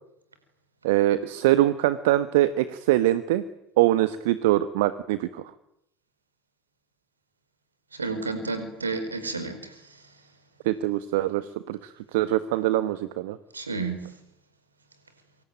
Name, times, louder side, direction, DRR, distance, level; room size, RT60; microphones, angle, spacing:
voice 1, 0.8-3.4 3.8-5.4 10.6-13.4, right 14 dB, 60° right, 13 dB, 1.4 m, -23 dB
voice 2, 7.9-9.8 13.5-14.0, right 3 dB, 80° right, 10 dB, 4.9 m, -31 dB
26.5 x 25.0 x 9.1 m, 0.81 s
figure-of-eight pair, 70°, 0 cm